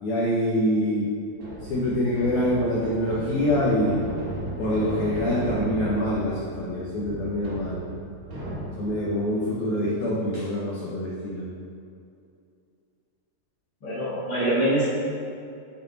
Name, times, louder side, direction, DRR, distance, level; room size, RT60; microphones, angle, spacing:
voice 1, 0.0-1.1 1.6-4.0 4.6-7.8 8.8-11.4, equal, 90° left, -6 dB, 1.6 m, -25 dB
sound 1, 1.3-9.1, equal, 70° right, 1.2 m, -35 dB
voice 2, 13.8-14.8, right 1 dB, 50° left, -13 dB, 1.4 m, -24 dB
8.6 x 4.5 x 3.9 m, 2.5 s
omnidirectional pair, 4.7 m